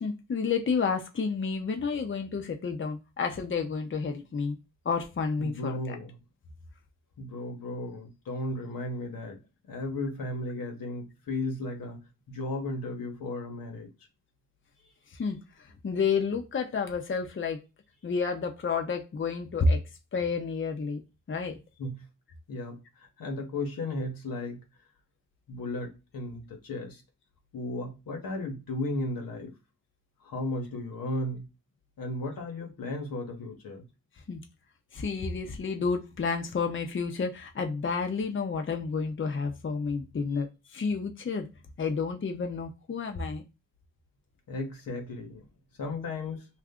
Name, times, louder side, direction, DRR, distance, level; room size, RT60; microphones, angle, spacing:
voice 1, 0.0-4.6 4.8-5.9 15.1-17.6 18.0-19.8 20.1-21.0 21.3-21.6 34.3-34.4 34.9-41.5 41.8-43.4, left 5 dB, 35° left, 0.6 m, -30 dB
voice 2, 5.4-6.2 7.2-9.4 9.7-13.9 21.8-22.0 22.5-24.6 25.5-27.0 27.5-29.5 30.2-31.5 32.0-33.9 44.5-45.4 45.8-46.5, left 2 dB, 90° left, 1.0 m, -35 dB
2.6 x 2.4 x 3.5 m
cardioid pair, 60°, 33 cm